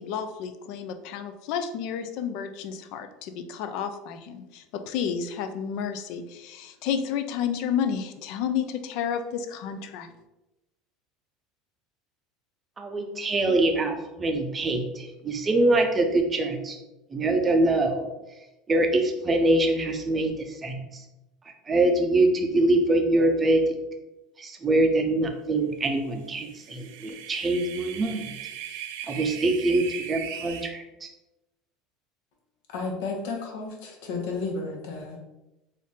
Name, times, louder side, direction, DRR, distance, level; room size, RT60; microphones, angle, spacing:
voice 1, 0.0-10.2, left 8 dB, 60° left, 9 dB, 0.4 m, -31 dB
voice 2, 12.8-16.8 17.1-18.1 18.7-20.3 20.6-20.8 21.7-23.6 24.4-28.3 29.1-31.1, right 2 dB, 20° right, 4 dB, 0.5 m, -24 dB
sound 1, 26.4-30.7, right 9 dB, 75° right, 0.4 m, -38 dB
voice 3, 32.7-35.2, left 3 dB, 80° left, 0 dB, 1.1 m, -32 dB
4.0 x 2.6 x 3.5 m, 0.97 s
cardioid pair, 150°, 0 cm